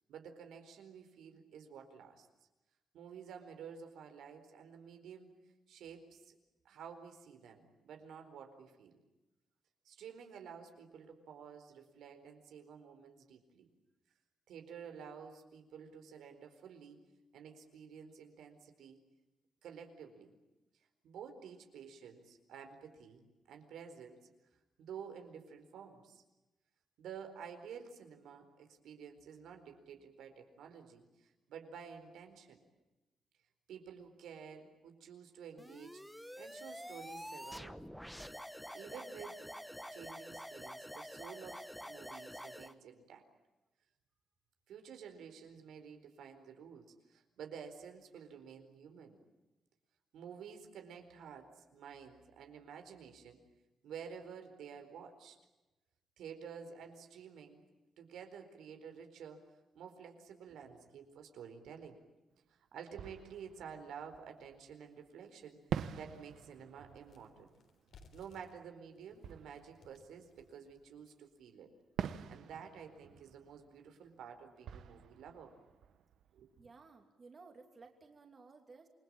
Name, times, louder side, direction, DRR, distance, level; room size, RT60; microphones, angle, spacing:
voice 1, 0.1-2.3 2.9-5.3 5.7-6.4 6.6-9.0 9.8-13.7 14.5-17.0 17.3-19.0 19.6-20.3 21.0-24.2 24.8-26.2 27.0-32.6 33.7-36.0 36.3-37.8 38.7-39.4 39.9-43.2 44.7-49.2 50.1-53.4 53.8-55.4 56.2-57.6 58.0-59.4 59.7-62.0 62.5-67.5 68.1-71.7 72.3-75.5 76.3-76.5, right 7 dB, 90° right, 6 dB, 4.4 m, -51 dB
sound 1, 35.6-42.7, equal, ahead, 1.0 m, -48 dB
Fireworks, 62.3-62.4 62.9-64.9 65.7-71.0 72.0-76.7, right 8 dB, 70° right, 1.3 m, -47 dB
sound 2, 64.3-64.4 64.9-65.0 65.4-71.4, left 4 dB, 60° left, 3.6 m, -65 dB
voice 2, 76.6-78.9, right 4 dB, 30° right, 4 dB, 2.8 m, -57 dB
28.5 x 22.5 x 8.9 m, 1.1 s
wide cardioid pair, 160°, 0 cm